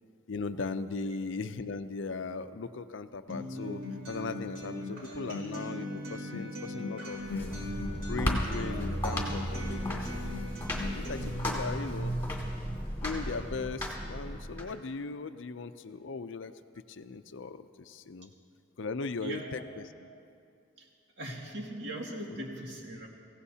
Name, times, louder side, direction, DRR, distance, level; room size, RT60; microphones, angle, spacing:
voice 1, 0.3-7.5 8.0-10.3 10.8-12.2 13.0-18.3 18.8-19.9, left 4 dB, 65° left, 11 dB, 0.5 m, -38 dB
Acoustic guitar, 3.3-11.3, left 2 dB, 80° right, 4.5 m, -39 dB
sound 1, 7.2-14.6, equal, 10° left, 2.0 m, -34 dB
voice 2, 19.2-19.6 20.8-20.9 21.2-23.1, right 1 dB, 55° right, -1 dB, 2.2 m, -40 dB
25.0 x 16.0 x 2.8 m, 2.5 s
head